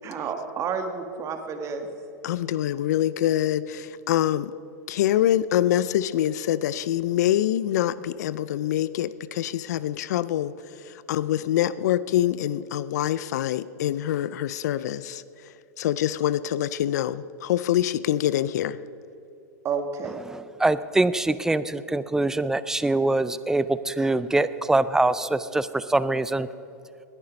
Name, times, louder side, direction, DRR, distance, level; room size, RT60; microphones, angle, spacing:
voice 1, 0.0-1.9 19.6-20.2, right 6 dB, 30° right, 5 dB, 1.7 m, -30 dB
voice 2, 2.2-4.5 4.9-10.5 10.9-15.2 15.8-18.8, left 12 dB, 70° left, 17 dB, 0.5 m, -25 dB
voice 3, 20.3-26.5, right 2 dB, 5° right, 15 dB, 0.5 m, -24 dB
19.5 x 9.7 x 5.3 m, 2.7 s
hypercardioid pair, 110°, 9 cm